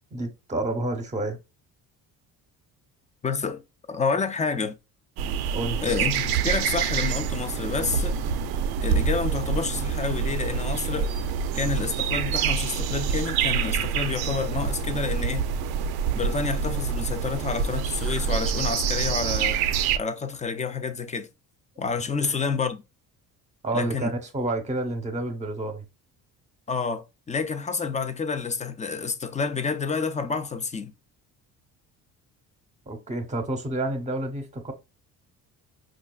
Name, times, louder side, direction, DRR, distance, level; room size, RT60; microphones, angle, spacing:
voice 1, 0.1-1.4 5.5-5.8 22.2-22.4 23.6-25.8 32.9-34.7, right 2 dB, 20° right, 0.9 m, -29 dB
voice 2, 3.2-3.6 3.9-4.8 5.8-8.2 8.8-11.1 11.5-15.5 16.1-19.6 20.0-21.3 21.8-22.8 23.7-24.1 26.7-30.9, left 5 dB, 20° left, 0.4 m, -29 dB
sound 1, 5.2-20.0, right 6 dB, 90° right, 0.5 m, -26 dB
5.3 x 2.4 x 2.3 m
cardioid pair, 110°, 36 cm